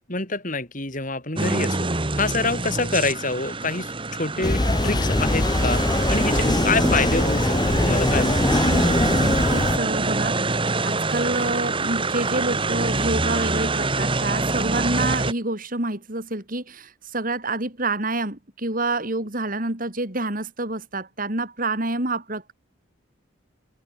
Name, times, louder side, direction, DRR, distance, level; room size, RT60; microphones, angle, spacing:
voice 1, 0.1-1.9 2.1-8.4, left 3 dB, 40° left, 4.4 m, -26 dB
sound 1, 1.4-15.3, right 3 dB, 25° right, 1.5 m, -25 dB
sound 2, 4.4-9.8, left 2 dB, 20° left, 0.7 m, -22 dB
voice 2, 8.6-10.4 10.8-22.5, right 2 dB, 40° right, 3.8 m, -28 dB
head